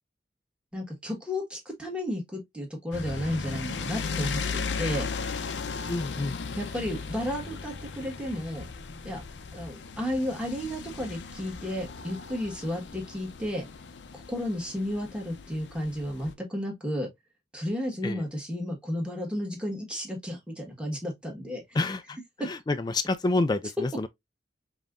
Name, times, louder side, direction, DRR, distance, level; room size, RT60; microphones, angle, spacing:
voice 1, 0.7-5.1 6.6-8.7 9.0-9.2 9.5-13.6 14.1-17.1 17.5-21.6 22.4-22.5, equal, 5° right, 1.4 m, -33 dB
sound 1, 2.9-16.3, left 5 dB, 70° left, 0.6 m, -37 dB
voice 2, 5.9-6.4 18.0-18.3 21.7-24.1, left 2 dB, 25° left, 0.3 m, -28 dB
5.2 x 2.9 x 2.4 m
head